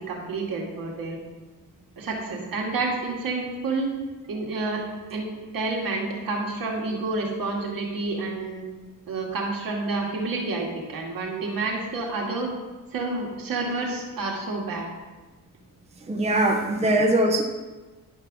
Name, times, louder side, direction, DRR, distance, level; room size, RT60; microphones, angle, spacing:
voice 1, 0.1-1.2 2.0-3.9 4.3-4.8 5.1-5.3 5.5-8.6 9.1-12.5 12.9-14.9, right 3 dB, 75° right, -1 dB, 2.2 m, -29 dB
voice 2, 16.1-17.4, right 1 dB, 20° right, 2 dB, 0.8 m, -21 dB
11.0 x 4.7 x 6.1 m, 1.2 s
wide cardioid pair, 150°, 35 cm